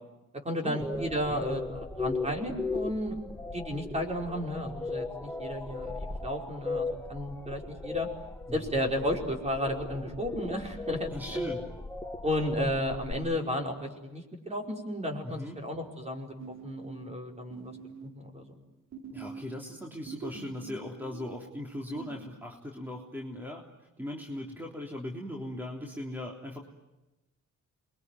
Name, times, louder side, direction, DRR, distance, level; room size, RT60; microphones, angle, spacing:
voice 1, 0.4-8.1 8.5-11.5 12.2-16.3 16.6-17.8 18.0-18.6, equal, 20° right, 2 dB, 5.1 m, -33 dB
sound 1, 0.8-13.1, left 3 dB, 10° left, 2.1 m, -37 dB
voice 2, 11.1-11.6 15.2-15.6 19.1-23.6 24.0-26.6, left 1 dB, 5° right, -1 dB, 3.5 m, -38 dB
sound 2, 16.4-18.6 18.9-22.4, right 5 dB, 60° right, 4.5 m, -45 dB
27.5 x 22.5 x 9.5 m, 1.0 s
cardioid pair, 90°, 30 cm